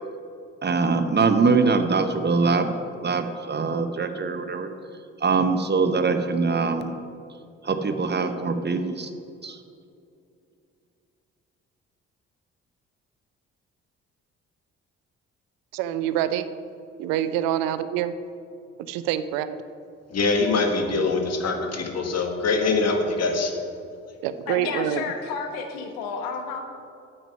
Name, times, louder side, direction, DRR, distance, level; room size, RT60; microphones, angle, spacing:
voice 1, 0.6-2.7 3.0-4.7 5.2-6.9 7.6-9.1 9.4-9.6, right 4 dB, 25° right, 8 dB, 0.8 m, -23 dB
voice 2, 15.7-16.5 17.0-18.1 18.8-19.6 24.2-25.0, right 11 dB, 65° right, 13 dB, 0.6 m, -26 dB
voice 3, 20.1-23.5, left 3 dB, 40° left, 4 dB, 1.6 m, -23 dB
voice 4, 24.5-26.6, left 5 dB, 70° left, 4 dB, 1.2 m, -31 dB
9.1 x 7.9 x 5.5 m, 2.5 s
figure-of-eight pair, 40°, 38 cm